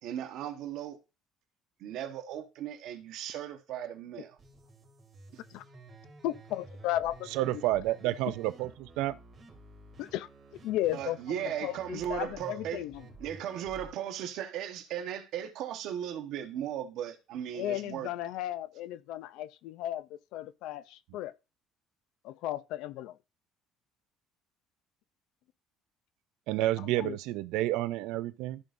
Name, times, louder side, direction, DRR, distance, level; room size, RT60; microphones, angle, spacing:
voice 1, 0.0-1.0 1.8-4.4 10.9-12.8 13.2-18.1, right 10 dB, 60° right, 1.2 m, -37 dB
sound 1, 4.4-13.9, right 2 dB, 25° right, 2.9 m, -52 dB
voice 2, 6.2-7.6 10.0-10.3 10.6-13.0 17.5-21.3 22.2-23.1 26.8-27.2, left 13 dB, 70° left, 0.5 m, -35 dB
voice 3, 7.3-9.2 26.5-28.6, right 15 dB, 80° right, 0.4 m, -30 dB
13.5 x 5.2 x 2.6 m
cardioid pair, 170°, 0 cm